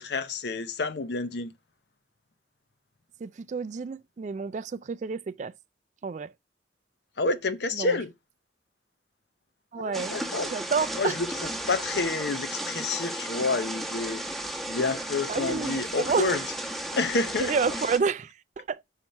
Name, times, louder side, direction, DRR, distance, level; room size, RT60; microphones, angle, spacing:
voice 1, 0.0-1.5 7.2-8.1 9.8-10.5 11.0-14.2 14.7-16.4 16.7-17.5, left 3 dB, 65° left, 0.7 m, -29 dB
voice 2, 3.2-5.5 6.0-6.3 7.8-8.0 9.7-10.2 10.5-11.2 15.3-16.3 17.4-18.8, right 5 dB, 40° right, 0.3 m, -29 dB
sound 1, 9.9-18.0, right 1 dB, ahead, 1.0 m, -34 dB
5.8 x 4.4 x 5.2 m
head